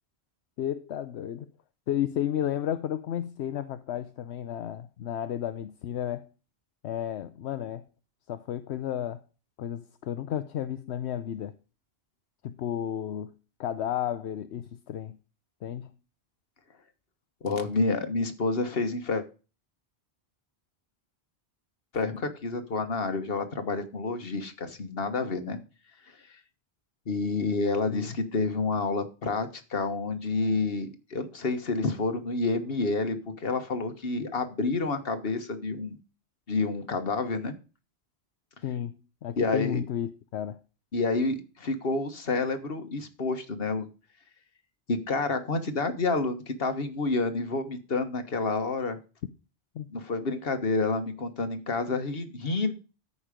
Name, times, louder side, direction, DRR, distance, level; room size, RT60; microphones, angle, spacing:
voice 1, 0.6-1.5 1.9-6.3 6.8-7.8 8.3-9.2 9.6-11.5 12.4-13.3 13.6-15.2 15.6-15.9 27.9-28.1 38.6-40.6 49.7-49.9, left 10 dB, 80° left, 0.9 m, -32 dB
voice 2, 17.4-19.2 21.9-25.6 27.1-36.0 36.5-37.5 39.4-39.8 40.9-43.9 44.9-49.0 49.9-52.7, left 3 dB, 60° left, 1.6 m, -29 dB
13.5 x 5.6 x 5.1 m
omnidirectional pair, 1.1 m